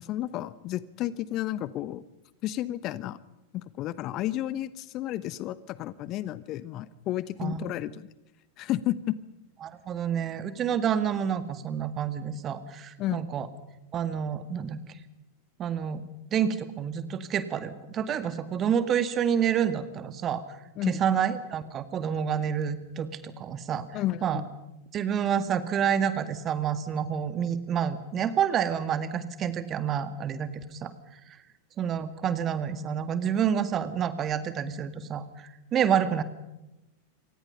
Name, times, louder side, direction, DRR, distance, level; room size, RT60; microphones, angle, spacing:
voice 1, 0.0-2.0 2.4-3.2 3.5-8.1 8.6-9.2 13.0-13.2 20.8-21.0 23.9-24.4, left 14 dB, 35° left, 17 dB, 0.9 m, -32 dB
voice 2, 9.6-13.5 13.9-14.8 15.6-16.0 16.3-20.4 20.9-24.4 24.9-30.9 31.3-31.4 31.8-36.2, right 8 dB, 30° right, 11 dB, 1.9 m, -28 dB
27.5 x 24.5 x 5.7 m, 0.95 s
figure-of-eight pair, 90°, 0 cm